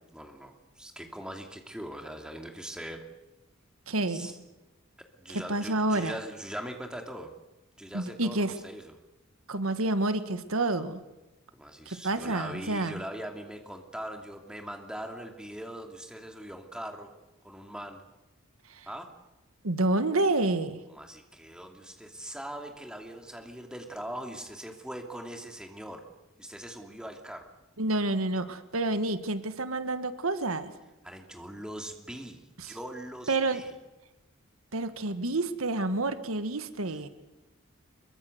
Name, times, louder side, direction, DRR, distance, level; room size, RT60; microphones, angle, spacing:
voice 1, 0.1-3.0 4.1-4.3 5.2-7.3 7.8-9.0 11.5-17.1 17.4-18.0 18.9-19.1 20.9-26.0 26.4-27.5 31.0-33.7, right 1 dB, 5° right, 3 dB, 2.7 m, -41 dB
voice 2, 3.9-4.3 5.3-6.1 7.9-8.5 9.5-11.0 11.8-13.0 18.8-18.9 19.6-20.8 27.8-30.7 32.6-32.8 33.3-33.6 34.7-37.1, right 2 dB, 90° right, 10 dB, 1.6 m, -29 dB
25.5 x 23.0 x 8.0 m, 1.0 s
head